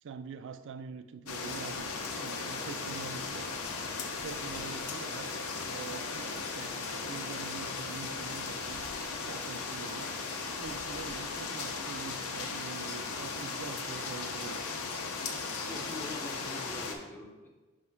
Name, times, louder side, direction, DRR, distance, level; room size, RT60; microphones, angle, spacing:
voice 1, 0.0-3.8 4.2-5.3 5.7-8.9 9.2-10.1 10.5-14.8, right 5 dB, 55° right, 11 dB, 0.3 m, -45 dB
sound 1, 1.3-16.9, left 4 dB, 70° left, 0.8 m, -37 dB
voice 2, 15.7-17.5, left 2 dB, 10° left, 0 dB, 0.7 m, -44 dB
5.8 x 3.1 x 5.4 m, 1.2 s
head